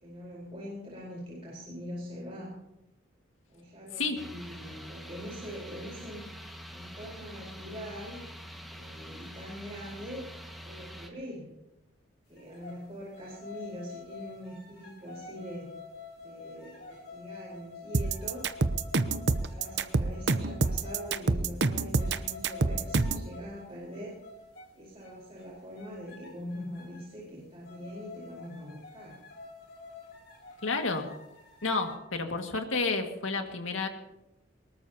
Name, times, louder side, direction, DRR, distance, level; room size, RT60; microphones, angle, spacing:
voice 1, 0.0-2.5 3.5-6.3 6.7-8.2 8.7-10.3 10.6-11.5 12.3-15.7 16.2-18.5 19.4-24.2 24.7-29.2, equal, 30° right, -5 dB, 4.4 m, -43 dB
sound 1, 4.2-11.1, equal, ahead, 1.7 m, -45 dB
sound 2, 12.4-12.8 13.1-21.2 21.6-21.7 22.0-23.6 23.9-24.7 25.0-25.4 25.8-27.1 27.6-31.9, left 3 dB, 50° left, 4.9 m, -48 dB
sound 3, 17.9-23.3, right 3 dB, 55° right, 0.7 m, -27 dB
voice 2, 30.6-31.1 31.6-33.9, left 3 dB, 85° left, 4 dB, 2.0 m, -30 dB
23.0 x 20.0 x 2.9 m, 0.89 s
head